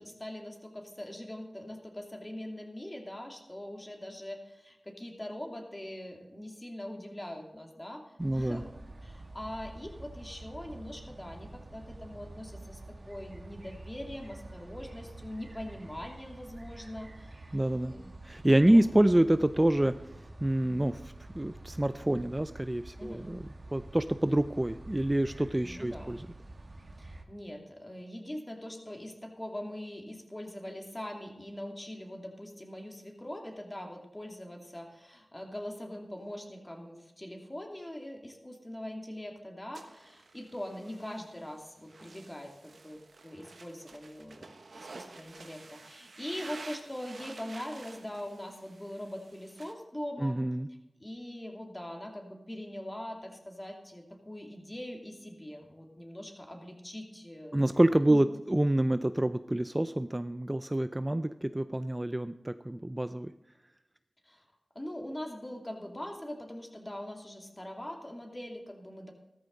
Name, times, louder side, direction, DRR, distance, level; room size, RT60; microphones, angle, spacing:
voice 1, 0.0-8.7 9.0-12.8 13.0-18.1 18.5-18.8 23.0-23.3 25.6-26.1 27.0-50.4 51.0-57.6 58.1-58.2 64.2-64.4 64.7-69.1, left 1 dB, 25° left, 2 dB, 2.5 m, -42 dB
voice 2, 8.2-8.6 17.5-17.9 18.2-20.0 20.4-23.4 23.7-26.3 50.2-50.7 57.5-63.3, right 1 dB, 20° right, 11 dB, 0.4 m, -27 dB
sound 1, 8.2-27.2, right 2 dB, 50° right, 1.6 m, -48 dB
sound 2, 39.7-49.7, right 3 dB, 85° right, 1.1 m, -51 dB
14.0 x 13.5 x 4.0 m, 0.95 s
cardioid pair, 45°, 0 cm